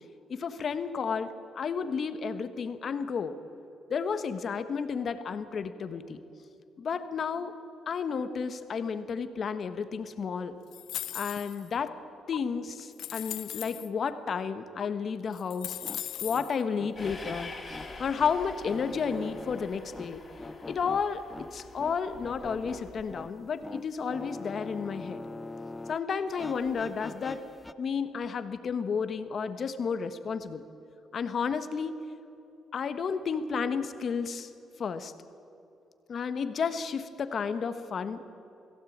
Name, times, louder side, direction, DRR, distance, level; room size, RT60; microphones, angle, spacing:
voice 1, 0.3-3.4 3.9-6.2 6.8-7.6 7.9-10.6 11.1-12.0 12.3-15.8 16.2-17.5 18.0-20.2 20.7-25.2 25.9-27.4 27.8-30.6 31.1-32.0 32.7-34.5 34.8-35.1 36.1-38.2, left 6 dB, 50° left, 10 dB, 1.3 m, -32 dB
sound 1, 10.7-11.7 12.3-12.4 12.9-13.9 14.8-14.9 15.3-16.5, left 12 dB, 80° left, 0.6 m, -38 dB
sound 2, 15.7-26.0 26.3-27.7, left 2 dB, 15° left, 0.8 m, -44 dB
Train, 17.0-23.3, left 3 dB, 30° left, 4.4 m, -46 dB
21.0 x 16.0 x 8.7 m, 2.7 s
cardioid pair, 90°, 0 cm